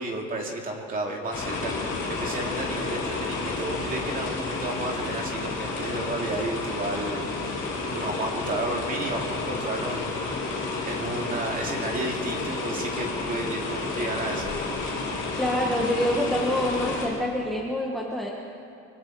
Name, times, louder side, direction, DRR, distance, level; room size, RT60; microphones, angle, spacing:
voice 1, 0.0-14.5, right 2 dB, 25° right, 1 dB, 2.5 m, -32 dB
sound 1, 1.3-17.1, left 3 dB, 35° left, 6.7 m, -31 dB
voice 2, 15.4-18.3, left 1 dB, ahead, -2 dB, 1.3 m, -26 dB
24.5 x 24.0 x 4.7 m, 2.5 s
cardioid pair, 180°, 34 cm